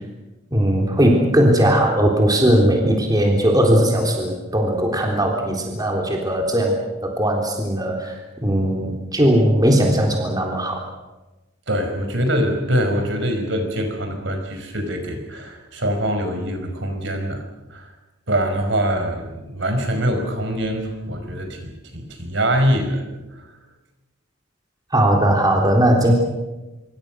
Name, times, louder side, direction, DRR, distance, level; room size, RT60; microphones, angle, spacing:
voice 1, 0.5-8.1 8.4-10.9 24.9-26.1, equal, 20° right, 1 dB, 3.6 m, -18 dB
voice 2, 11.7-17.4 17.7-17.9 18.3-23.0 23.3-23.5, equal, 65° right, 5 dB, 5.5 m, -23 dB
26.5 x 24.5 x 6.3 m, 1.1 s
head